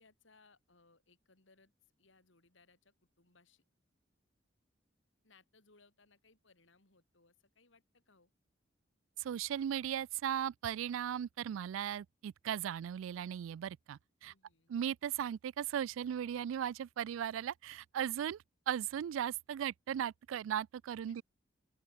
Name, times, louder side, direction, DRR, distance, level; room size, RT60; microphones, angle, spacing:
voice 1, 0.0-3.6 5.2-8.3 14.2-14.9 21.1-21.2, left 3 dB, 75° left, 3.2 m, -68 dB
voice 2, 9.2-14.3 14.7-21.2, right 9 dB, 85° right, 0.3 m, -37 dB
open air
head